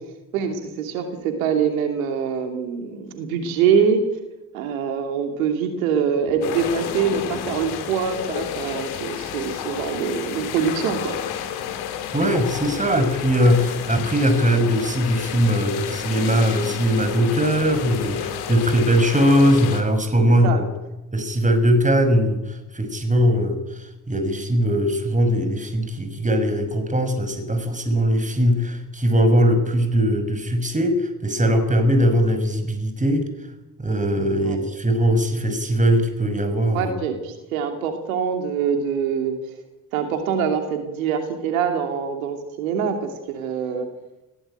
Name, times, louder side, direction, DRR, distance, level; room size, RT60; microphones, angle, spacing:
voice 1, 0.3-4.1 4.5-11.2 20.4-20.6 34.4-34.6 36.7-39.4 39.9-43.9, right 6 dB, 80° right, 5 dB, 2.8 m, -24 dB
sound 1, 6.4-19.8, left 9 dB, 70° left, 3.6 m, -31 dB
voice 2, 12.1-20.6 21.1-22.4 22.7-23.6 24.1-33.2 33.8-36.9, equal, 20° right, 8 dB, 6.2 m, -20 dB
21.0 x 17.5 x 9.0 m, 1.0 s
hypercardioid pair, 55°, 41 cm